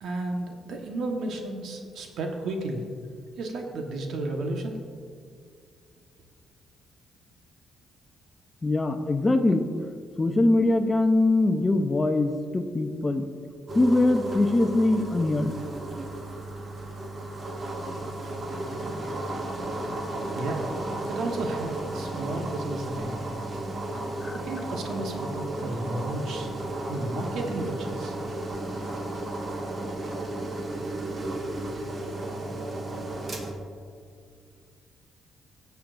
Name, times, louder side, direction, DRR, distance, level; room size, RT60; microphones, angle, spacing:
voice 1, 0.0-2.9 3.4-4.8 20.3-20.7 21.0-23.3 24.3-26.5 26.9-28.1, right 2 dB, 75° right, 3 dB, 1.2 m, -33 dB
voice 2, 8.6-9.7 10.2-13.3 13.7-15.6 24.2-24.4, left 2 dB, 20° left, 7 dB, 0.7 m, -22 dB
sound 1, 13.7-33.5, right 2 dB, 40° right, 1.5 m, -34 dB
17.0 x 7.1 x 2.6 m, 2.1 s
cardioid pair, 90°, 0 cm